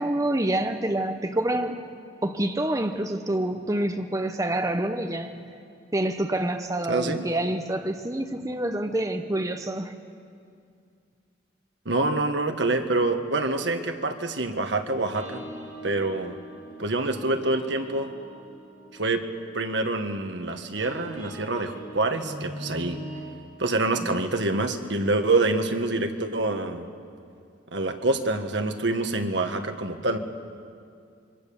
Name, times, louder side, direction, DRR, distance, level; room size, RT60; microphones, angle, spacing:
voice 1, 0.0-1.9 2.2-5.5 5.9-9.9 22.8-22.9 24.0-24.1, right 1 dB, 20° right, 6 dB, 0.9 m, -27 dB
voice 2, 6.9-7.2 11.8-15.4 15.8-16.3 16.8-18.1 19.0-19.3 19.5-23.0 23.6-26.9 27.7-30.2, right 2 dB, 70° right, 6 dB, 1.5 m, -26 dB
sound 1, 14.9-23.2, right 1 dB, 40° right, 6.7 m, -42 dB
26.5 x 24.0 x 7.1 m, 2.3 s
head